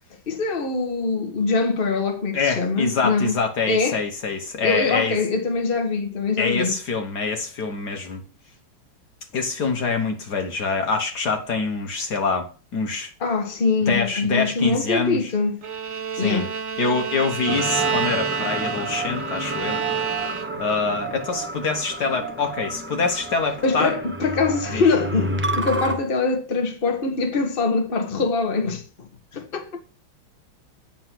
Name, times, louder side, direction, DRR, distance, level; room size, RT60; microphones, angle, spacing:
voice 1, 0.3-3.4 3.7-4.0 4.6-6.7 13.2-15.6 16.2-16.5 23.6-28.8 29.3-29.8, left 4 dB, 30° left, 1.5 m, -23 dB
voice 2, 2.3-5.2 6.4-8.2 9.3-13.1 13.9-15.3 16.2-16.4 16.8-19.8 20.6-24.0 24.7-24.8, left 4 dB, 55° left, 1.7 m, -25 dB
Bowed string instrument, 15.6-20.8, right 7 dB, 50° right, 1.3 m, -28 dB
sound 1, 17.5-26.0, right 1 dB, 10° right, 0.5 m, -30 dB
9.7 x 4.6 x 7.5 m
omnidirectional pair, 2.2 m